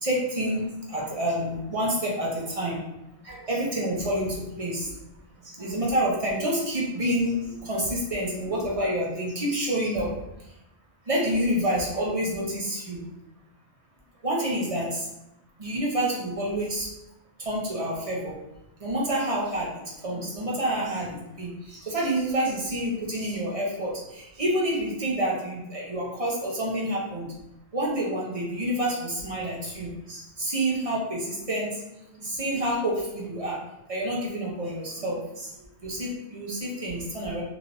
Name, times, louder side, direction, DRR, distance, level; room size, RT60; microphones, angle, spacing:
voice 1, 0.0-2.8 3.2-4.9 5.4-10.1 10.4-10.5 11.0-13.0 14.2-15.1 15.6-16.9 17.4-18.4 18.8-27.3 27.7-31.8 32.1-33.6 33.9-37.4, right 1 dB, 40° right, -4 dB, 0.7 m, -28 dB
3.2 x 2.9 x 2.5 m, 0.89 s
omnidirectional pair, 1.1 m